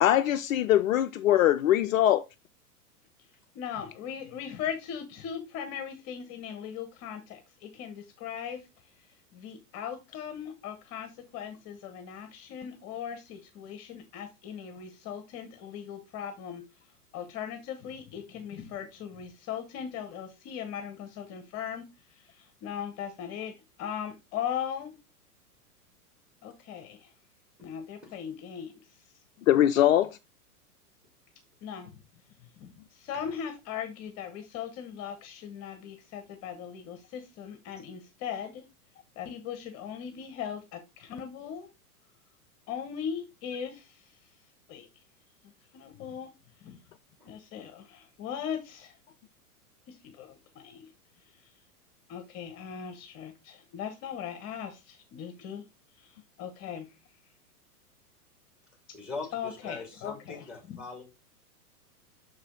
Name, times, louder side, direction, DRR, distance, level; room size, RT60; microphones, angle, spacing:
voice 1, 0.0-2.2 29.5-30.2, left 12 dB, 60° left, 0.5 m, -22 dB
voice 2, 3.5-8.7 9.3-16.6 17.1-21.8 22.1-25.0 26.4-27.1 27.6-28.7 31.6-32.0 32.4-38.6 39.2-41.7 42.7-44.2 44.7-44.9 45.7-46.3 46.6-46.8 47.2-49.0 49.9-50.9 52.1-55.6 56.0-57.0 59.3-60.8, left 8 dB, 35° left, 1.1 m, -39 dB
voice 3, 58.9-61.0, left 4 dB, ahead, 2.3 m, -41 dB
6.3 x 4.8 x 3.6 m
figure-of-eight pair, 105°, 46 cm